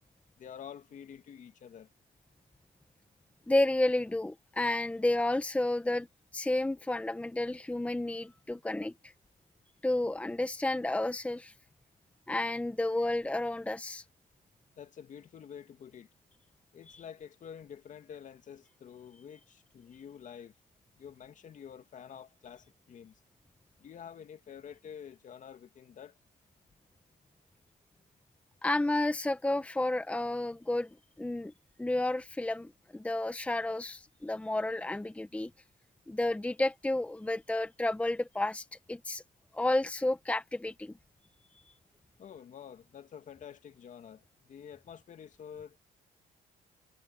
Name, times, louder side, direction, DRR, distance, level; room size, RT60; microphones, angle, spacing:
voice 1, 0.4-1.9 14.8-16.1 16.7-20.5 21.0-23.2 23.8-26.2 42.2-45.8, left 8 dB, 50° left, 2.3 m, -48 dB
voice 2, 3.5-6.1 6.3-9.1 9.8-11.5 12.3-14.0 28.6-31.5 31.8-35.5 36.1-39.2 39.5-41.0, left 2 dB, 10° left, 1.1 m, -31 dB
cardioid pair, 110°, 17 cm